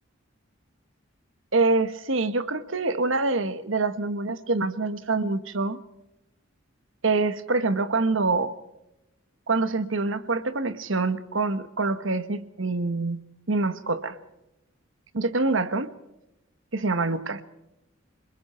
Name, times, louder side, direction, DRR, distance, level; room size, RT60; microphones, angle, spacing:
voice 1, 1.5-5.8 7.0-8.5 9.5-13.2 13.5-14.2 15.1-15.9 16.7-17.4, right 3 dB, 70° right, 12 dB, 1.4 m, -25 dB
28.5 x 21.0 x 4.4 m, 0.90 s
head